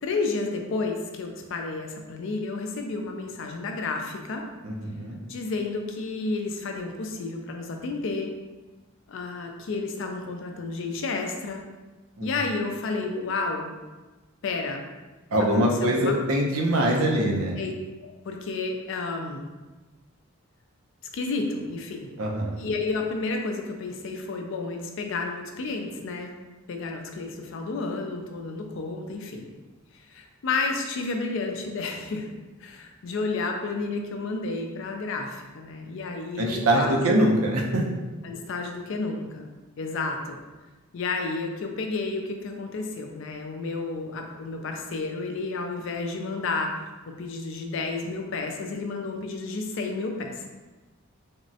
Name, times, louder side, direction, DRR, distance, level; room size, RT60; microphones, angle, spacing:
voice 1, 0.0-4.4 5.3-8.3 9.1-11.6 12.2-13.7 14.4-14.8 15.6-16.1 17.6-17.7 18.0-19.4 21.1-22.1 22.6-26.3 26.7-29.5 29.9-32.3 32.6-37.2 38.2-39.5 39.8-40.4 40.9-46.7 47.1-50.5, left 3 dB, 60° left, 3 dB, 0.4 m, -31 dB
voice 2, 4.6-5.2 12.2-12.3 15.3-17.6 22.2-22.6 36.4-37.8, right 1 dB, 75° right, 0 dB, 0.5 m, -23 dB
3.5 x 2.0 x 2.7 m, 1.2 s
head